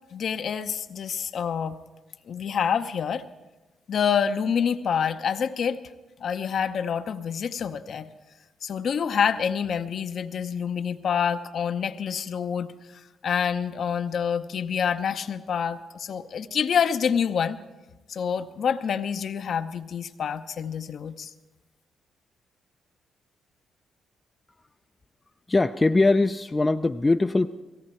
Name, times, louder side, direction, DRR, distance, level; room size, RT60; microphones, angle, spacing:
voice 1, 0.1-1.8 2.3-3.3 3.9-5.8 6.2-8.1 8.6-17.6 18.1-21.3, left 7 dB, 60° left, 9 dB, 0.7 m, -27 dB
voice 2, 25.5-27.5, left 2 dB, 25° left, 7 dB, 0.5 m, -21 dB
18.0 x 16.0 x 4.4 m, 1.1 s
hypercardioid pair, 50°, 0 cm